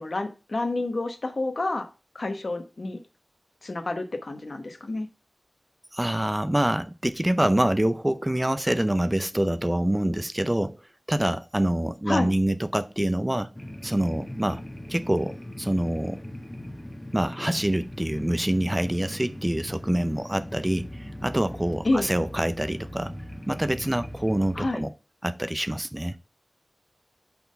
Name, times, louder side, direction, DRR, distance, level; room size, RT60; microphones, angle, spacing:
voice 1, 0.0-1.9 2.1-3.0 3.6-5.1 12.1-12.3 21.8-22.1 24.5-24.8, left 2 dB, 70° left, 1.1 m, -28 dB
voice 2, 5.9-10.8 11.1-13.5 13.8-14.6 14.9-16.2 17.1-23.1 23.5-24.9 25.2-26.2, right 1 dB, 20° right, 0.6 m, -26 dB
sound 1, 13.5-24.7, left 1 dB, 20° left, 1.3 m, -39 dB
5.6 x 4.3 x 5.3 m
wide cardioid pair, 50°, 0 cm